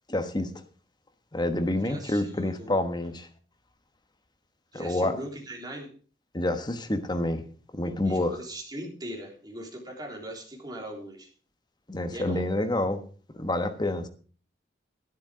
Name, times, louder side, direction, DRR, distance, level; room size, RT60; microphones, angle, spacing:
voice 1, 0.1-0.5 1.3-3.3 4.7-5.2 6.3-7.4 7.7-8.4 11.9-13.0 13.3-14.1, left 1 dB, 25° left, 1.3 m, -28 dB
voice 2, 1.8-2.7 4.7-5.9 8.0-11.3 12.1-12.4, right 1 dB, 25° right, 3.6 m, -40 dB
11.5 x 10.5 x 5.1 m
head